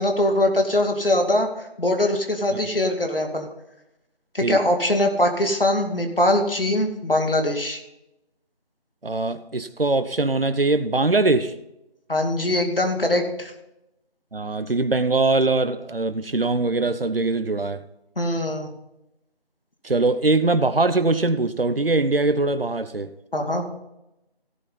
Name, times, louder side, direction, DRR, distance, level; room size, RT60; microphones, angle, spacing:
voice 1, 0.0-1.5 1.8-3.5 4.3-7.8 12.1-13.5 18.2-18.7 23.3-23.6, left 1 dB, 60° left, 4 dB, 2.5 m, -22 dB
voice 2, 9.0-11.5 14.3-17.8 19.8-23.1, right 3 dB, 65° right, 11 dB, 0.9 m, -22 dB
16.5 x 7.6 x 4.0 m, 0.89 s
figure-of-eight pair, 180°, 31 cm